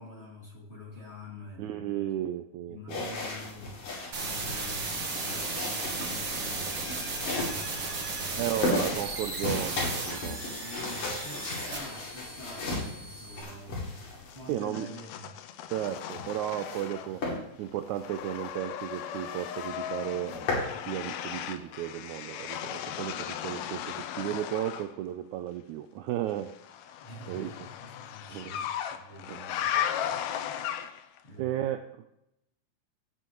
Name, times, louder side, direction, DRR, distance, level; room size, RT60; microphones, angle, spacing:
voice 1, 0.0-1.9 2.7-3.8 4.2-8.5 10.6-13.8 14.3-15.3 17.0-17.1 27.0-28.7 29.0-29.6 31.2-31.7, left 1 dB, 25° left, -4 dB, 2.0 m, -46 dB
voice 2, 1.6-3.0 8.4-10.4 14.5-14.9 15.7-17.2 17.6-20.5 20.9-26.5 27.3-27.5 28.3-28.5 29.3-29.4 31.4-32.1, right 12 dB, 80° right, 7 dB, 1.7 m, -34 dB
sound 1, 2.9-14.5 15.8-16.9 17.2-17.4 17.9-18.0 18.5-18.6 18.8-18.9 19.2-19.7 20.1-20.7, left 2 dB, 65° left, 3.9 m, -35 dB
sound 2, 4.1-13.4, right 3 dB, 50° right, 2.0 m, -36 dB
sound 3, 14.3-17.3 17.6-24.9 26.5-31.2, left 10 dB, 80° left, 1.6 m, -36 dB
15.5 x 6.9 x 3.0 m, 0.81 s
omnidirectional pair, 3.8 m